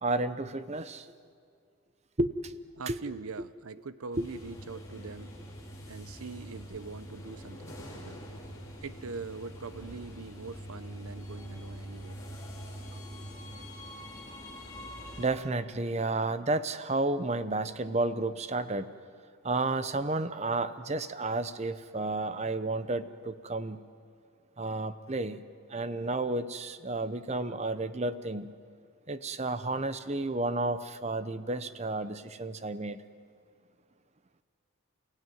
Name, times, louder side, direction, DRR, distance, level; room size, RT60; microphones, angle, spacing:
voice 1, 0.0-1.1 2.2-2.5 2.9-3.0 4.2-4.3 15.2-18.9 19.4-23.8 24.6-25.4 25.7-28.5 29.1-33.0, right 2 dB, 30° right, 13 dB, 0.7 m, -31 dB
voice 2, 2.8-5.4 5.9-8.2 8.8-12.2, right 4 dB, 80° right, 15 dB, 0.7 m, -43 dB
sound 1, 4.1-15.3, equal, 15° left, 4.0 m, -44 dB
29.0 x 16.5 x 9.3 m, 2.2 s
head